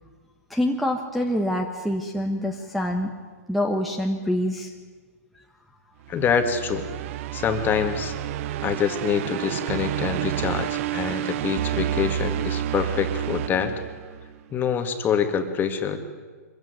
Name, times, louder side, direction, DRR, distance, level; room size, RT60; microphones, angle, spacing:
voice 1, 0.5-3.1 3.5-4.7, left 1 dB, ahead, 0 dB, 1.5 m, -25 dB
voice 2, 6.1-6.9 7.3-8.1 8.6-13.7 14.5-16.0, left 7 dB, 20° left, 7 dB, 2.1 m, -25 dB
sound 1, 6.1-14.4, right 12 dB, 50° right, 0.7 m, -29 dB
24.5 x 15.5 x 9.7 m, 1.5 s
hypercardioid pair, 135°, 9 cm